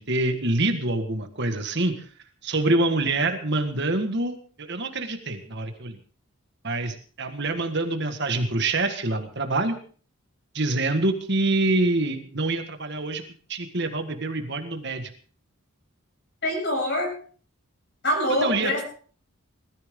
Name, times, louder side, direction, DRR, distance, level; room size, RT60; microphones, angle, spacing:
voice 1, 0.0-2.1 2.4-6.0 6.6-9.8 10.5-13.2 13.5-15.1 18.3-18.8, right 2 dB, 50° right, 7 dB, 1.7 m, -26 dB
voice 2, 16.4-17.1 18.0-18.8, left 1 dB, 50° left, 2 dB, 7.4 m, -24 dB
20.0 x 14.0 x 3.8 m, 0.43 s
head